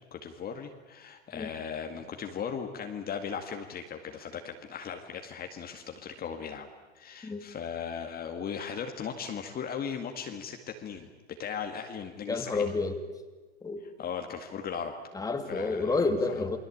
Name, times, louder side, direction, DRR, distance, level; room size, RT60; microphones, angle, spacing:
voice 1, 0.1-6.7 6.9-12.7 13.8-14.9 15.5-16.0, left 7 dB, 25° left, 4 dB, 2.1 m, -38 dB
voice 2, 12.3-13.0 13.6-13.8 15.1-16.6, left 3 dB, 10° left, 6 dB, 2.4 m, -29 dB
29.0 x 21.0 x 8.7 m, 1.2 s
hypercardioid pair, 115°, 35 cm